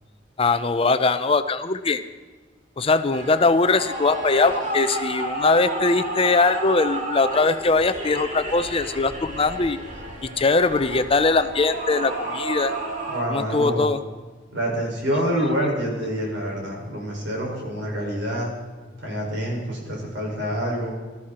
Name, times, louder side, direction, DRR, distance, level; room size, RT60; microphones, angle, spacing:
voice 1, 0.4-2.0 2.8-9.8 10.2-12.7 13.3-14.0, left 3 dB, 30° left, 11 dB, 0.6 m, -21 dB
sound 1, 3.1-13.2, right 2 dB, 40° right, 2.7 m, -31 dB
voice 2, 13.1-13.9 14.5-18.5 19.0-20.9, equal, 80° right, -2 dB, 5.7 m, -27 dB
19.0 x 13.0 x 4.3 m, 1.3 s
head